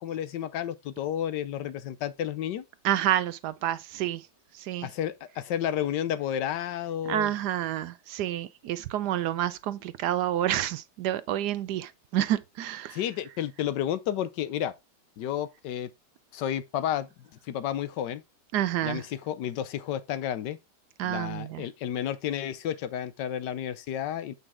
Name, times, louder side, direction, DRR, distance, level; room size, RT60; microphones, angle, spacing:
voice 1, 0.0-2.7 4.8-7.3 12.9-14.7 15.2-15.9 16.3-17.1 17.4-18.2 18.8-20.6 21.0-24.3, left 10 dB, 90° left, 1.4 m, -31 dB
voice 2, 2.8-4.3 4.5-4.9 7.1-13.0 18.5-19.0 21.0-21.6, right 12 dB, 75° right, 1.2 m, -29 dB
8.0 x 5.5 x 3.6 m
omnidirectional pair, 1.8 m